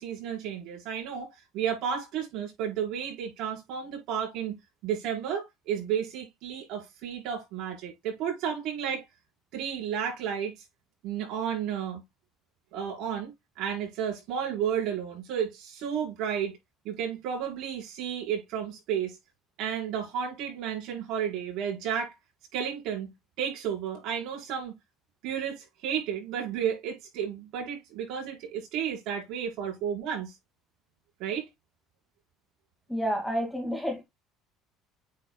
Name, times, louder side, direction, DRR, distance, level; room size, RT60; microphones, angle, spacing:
voice 1, 0.0-9.0 9.5-10.6 11.0-12.0 12.7-16.6 16.8-19.2 19.6-22.2 22.5-24.7 25.2-30.3 31.2-31.5, right 8 dB, 65° right, 4.9 m, -32 dB
voice 2, 32.9-34.0, equal, ahead, 2.0 m, -29 dB
9.2 x 4.8 x 2.3 m
cardioid pair, 155°, 0 cm